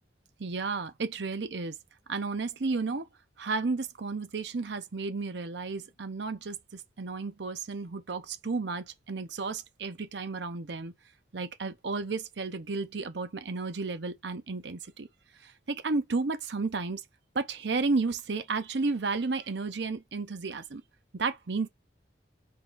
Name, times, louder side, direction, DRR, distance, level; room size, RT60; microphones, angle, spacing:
voice 1, 0.4-1.8 2.1-3.1 3.4-10.9 11.3-15.1 15.4-17.0 17.3-20.8 21.1-21.7, right 3 dB, 65° right, 0.7 m, -32 dB
4.9 x 3.7 x 2.6 m
head